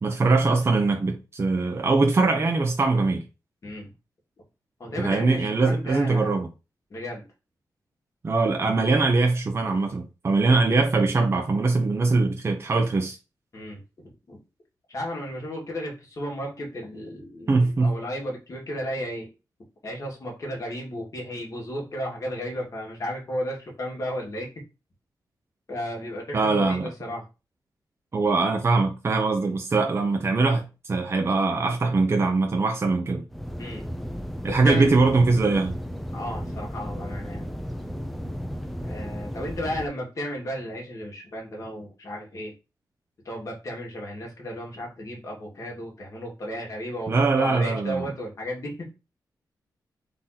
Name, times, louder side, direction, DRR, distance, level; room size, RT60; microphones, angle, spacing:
voice 1, 0.0-3.2 5.0-6.5 8.2-13.2 17.5-18.0 26.3-26.9 28.1-33.2 34.4-35.8 47.1-48.1, right 3 dB, 35° right, 0.7 m, -22 dB
voice 2, 4.8-6.3 6.9-7.2 10.5-10.7 13.5-13.8 14.3-14.4 14.9-19.3 19.8-24.5 25.7-27.3 33.6-33.8 34.5-34.9 36.1-37.5 38.8-42.5 43.3-48.8, equal, 45° left, 1.9 m, -34 dB
sound 1, 33.3-39.9, equal, ahead, 0.5 m, -34 dB
3.9 x 2.9 x 3.9 m
wide cardioid pair, 115°, 7 cm